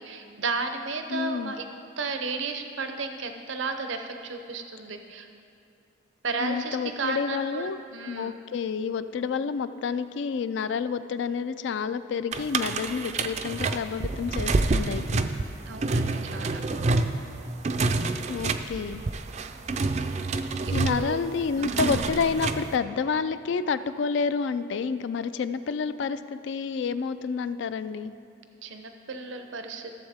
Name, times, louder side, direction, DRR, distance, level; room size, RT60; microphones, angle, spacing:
voice 1, 0.0-5.3 6.2-8.4 15.7-16.6 20.6-21.2 21.6-21.9 28.6-30.0, right 4 dB, 75° right, 6 dB, 0.6 m, -33 dB
voice 2, 1.1-1.6 6.4-7.8 8.1-15.3 18.3-19.1 20.7-28.1, left 5 dB, 65° left, 13 dB, 0.3 m, -29 dB
sound 1, 12.3-22.7, right 3 dB, 35° right, 0.4 m, -28 dB
15.0 x 7.2 x 3.5 m, 2.6 s
head